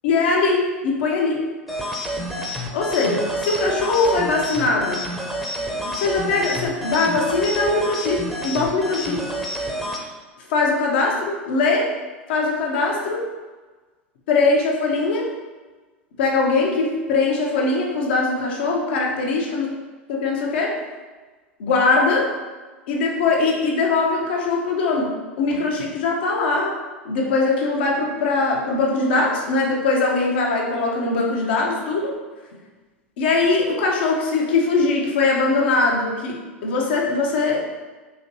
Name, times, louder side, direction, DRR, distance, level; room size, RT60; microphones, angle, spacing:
voice 1, 0.0-1.5 2.7-5.0 5.9-9.2 10.5-11.9 12.3-13.2 14.3-15.3 16.2-19.7 20.1-20.8 21.6-22.3 22.9-26.8 27.0-32.1 33.2-37.6, left 3 dB, 60° left, -1 dB, 0.7 m, -21 dB
sound 1, 1.7-10.0, equal, ahead, 0.7 m, -29 dB
4.0 x 2.9 x 2.8 m, 1.3 s
figure-of-eight pair, 85°, 6 cm